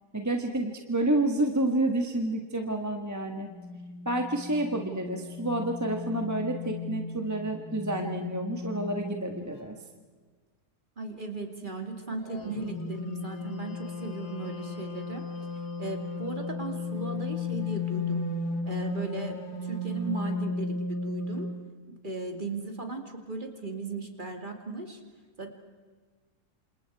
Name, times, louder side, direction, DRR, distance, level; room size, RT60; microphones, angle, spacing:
voice 1, 0.1-3.5 4.0-9.7, right 1 dB, 10° right, 3 dB, 1.5 m, -29 dB
sound 1, 3.5-9.6 12.2-21.5, left 3 dB, 80° left, 2.7 m, -35 dB
voice 2, 11.0-15.3 15.8-18.3 18.7-21.5 21.9-25.0 25.4-25.5, right 3 dB, 30° right, 4 dB, 2.7 m, -37 dB
28.5 x 27.5 x 4.8 m, 1.4 s
omnidirectional pair, 1.7 m